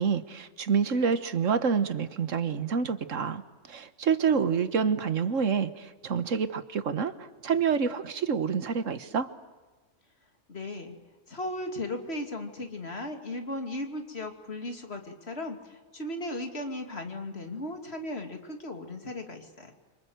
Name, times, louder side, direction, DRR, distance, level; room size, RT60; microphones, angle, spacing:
voice 1, 0.0-3.4 3.7-9.3, right 6 dB, 90° right, 12 dB, 1.6 m, -27 dB
voice 2, 10.5-11.0 11.3-19.7, left 1 dB, 55° left, 4 dB, 3.0 m, -36 dB
28.0 x 26.0 x 8.0 m, 1.3 s
omnidirectional pair, 1.3 m